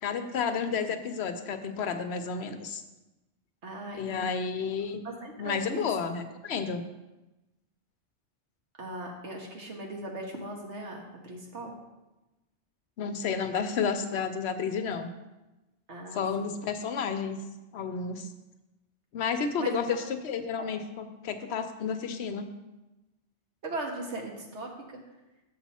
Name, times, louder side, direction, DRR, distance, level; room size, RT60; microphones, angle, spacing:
voice 1, 0.0-2.8 3.9-5.0 5.4-6.8 13.0-15.1 16.1-17.4 17.7-18.3 19.1-22.5, left 6 dB, 70° left, 8 dB, 0.9 m, -31 dB
voice 2, 3.6-4.3 5.0-5.9 8.8-11.7 15.9-16.5 19.6-20.0 20.6-20.7 23.6-25.0, right 2 dB, 75° right, 0 dB, 1.6 m, -39 dB
7.1 x 6.6 x 4.2 m, 1.0 s
omnidirectional pair, 1.2 m